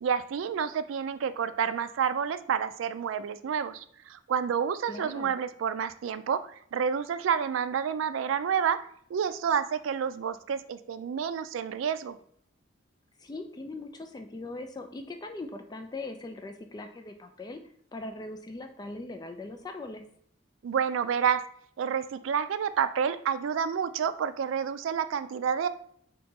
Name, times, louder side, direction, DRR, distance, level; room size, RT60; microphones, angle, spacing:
voice 1, 0.0-8.8 9.1-12.2 20.6-21.4 21.8-25.7, right 7 dB, 90° right, 13 dB, 0.3 m, -29 dB
voice 2, 4.9-5.3 13.2-17.6 17.9-20.0, left 2 dB, 20° left, 5 dB, 0.3 m, -40 dB
4.0 x 2.8 x 3.6 m, 0.64 s
head